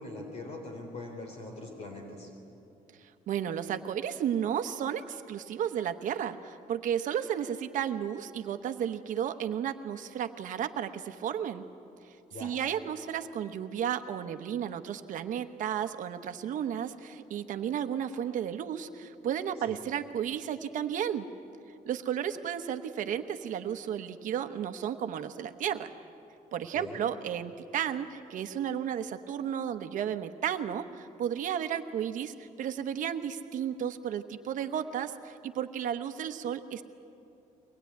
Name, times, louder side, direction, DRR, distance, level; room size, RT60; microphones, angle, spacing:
voice 1, 0.0-2.3 12.3-12.5 19.7-19.8 26.7-27.0, left 2 dB, 45° left, 2 dB, 3.7 m, -42 dB
voice 2, 3.0-11.6 12.0-21.3 21.8-25.9 26.5-36.8, right 9 dB, 65° right, 8 dB, 1.0 m, -33 dB
23.0 x 19.5 x 9.4 m, 2.7 s
cardioid pair, 170°, 15 cm